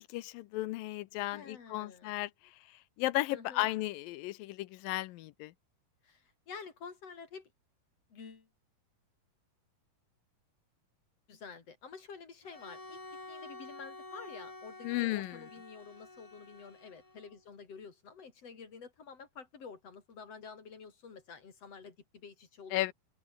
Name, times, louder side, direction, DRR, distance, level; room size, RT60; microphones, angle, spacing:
voice 1, 0.0-5.5 14.8-15.4 22.7-22.9, left 17 dB, 80° left, 2.4 m, -35 dB
voice 2, 1.3-2.1 3.3-3.7 6.0-7.5 8.1-8.5 11.3-13.0 13.3-22.9, left 5 dB, 45° left, 4.4 m, -49 dB
Bowed string instrument, 12.4-17.4, left 2 dB, 20° left, 0.9 m, -49 dB
omnidirectional pair, 4.1 m